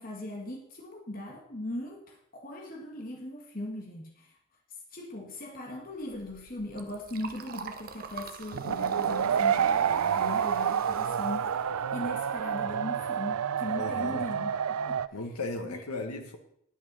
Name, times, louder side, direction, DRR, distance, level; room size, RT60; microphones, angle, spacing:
voice 1, 0.0-4.3 4.9-11.6 11.9-15.0 15.6-16.0, left 1 dB, 40° left, 0 dB, 1.7 m, -39 dB
Liquid, 5.9-12.6, right 5 dB, 40° right, 0.8 m, -47 dB
sound 1, 8.5-15.1, right 8 dB, 85° right, 0.5 m, -28 dB
voice 2, 13.7-14.3 15.1-16.4, left 2 dB, 90° left, 4 dB, 1.4 m, -36 dB
10.5 x 8.8 x 5.5 m, 0.70 s
head